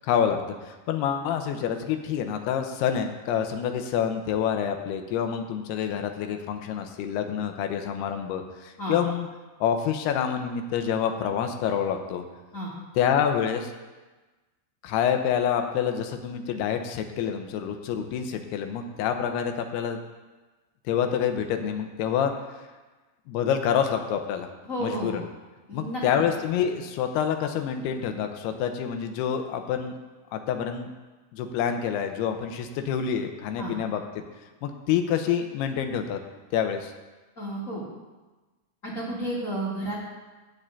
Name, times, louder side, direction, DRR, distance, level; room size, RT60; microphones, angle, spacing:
voice 1, 0.0-9.3 9.6-12.2 13.0-13.7 14.8-20.0 20.9-22.3 23.3-24.5 24.8-25.2 25.7-30.0 30.3-30.9 31.3-34.2 34.6-36.2 36.5-36.9, left 8 dB, 85° left, 6 dB, 2.9 m, -27 dB
voice 2, 24.7-25.2 25.7-26.0 33.6-33.7 37.4-37.8 38.8-40.0, right 1 dB, 25° left, -7 dB, 2.0 m, -31 dB
13.0 x 4.9 x 8.9 m, 1.2 s
omnidirectional pair, 4.7 m